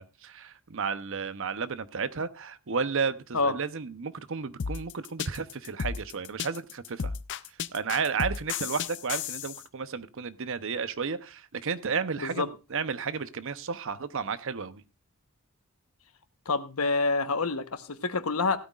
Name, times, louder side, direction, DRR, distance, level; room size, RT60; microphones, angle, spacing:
voice 1, 0.0-7.1 7.7-14.8, right 5 dB, 65° right, 0.8 m, -32 dB
sound 1, 4.6-9.6, left 6 dB, 60° left, 0.5 m, -33 dB
voice 2, 16.5-18.6, left 3 dB, 85° left, 1.1 m, -27 dB
16.0 x 13.0 x 2.4 m
head